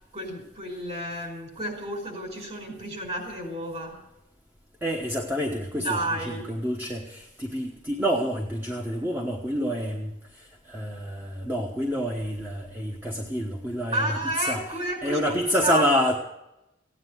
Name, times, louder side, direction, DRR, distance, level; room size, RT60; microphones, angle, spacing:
voice 1, 0.1-4.0 5.8-6.4 13.9-15.9, right 1 dB, 35° right, 2 dB, 5.0 m, -31 dB
voice 2, 4.8-16.2, equal, 10° right, 0 dB, 1.1 m, -28 dB
16.5 x 9.7 x 8.0 m, 0.92 s
head